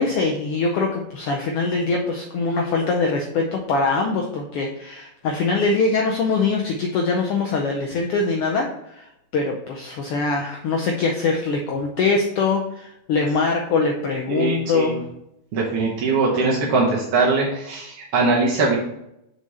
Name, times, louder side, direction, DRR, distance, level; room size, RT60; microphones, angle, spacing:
voice 1, 0.0-15.0, left 4 dB, 90° left, 1 dB, 1.2 m, -23 dB
voice 2, 14.3-15.0 15.5-18.8, right 3 dB, 60° right, -4 dB, 1.6 m, -21 dB
5.2 x 4.9 x 4.1 m, 0.82 s
omnidirectional pair, 3.4 m